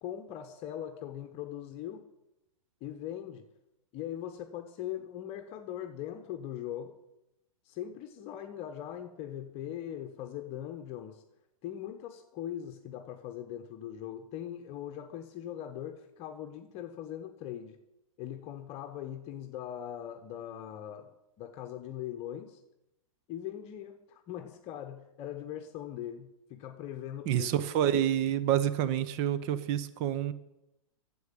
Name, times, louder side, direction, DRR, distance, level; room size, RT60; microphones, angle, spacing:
voice 1, 0.0-2.1 2.8-3.5 3.9-7.0 7.6-11.2 11.6-17.8 18.2-22.6 23.3-27.5, left 11 dB, 35° left, 6 dB, 1.0 m, -40 dB
voice 2, 27.3-30.3, right 10 dB, 40° right, 14 dB, 0.9 m, -28 dB
9.5 x 7.8 x 8.9 m, 0.90 s
hypercardioid pair, 125°, 18 cm